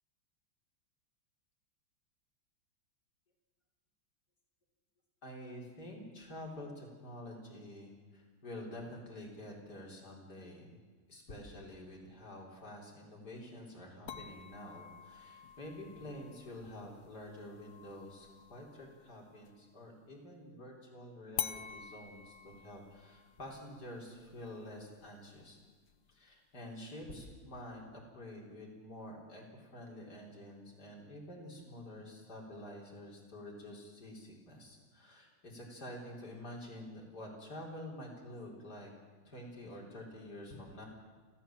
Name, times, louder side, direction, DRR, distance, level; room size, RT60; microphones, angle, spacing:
voice 1, 5.2-10.8 11.1-25.6 26.1-38.9 39.2-40.9, left 1 dB, 45° left, -1 dB, 4.9 m, -48 dB
sound 1, 14.1-19.7 21.4-26.4, left 9 dB, 60° left, 1.2 m, -47 dB
30.0 x 13.0 x 7.5 m, 1.4 s
omnidirectional pair, 2.4 m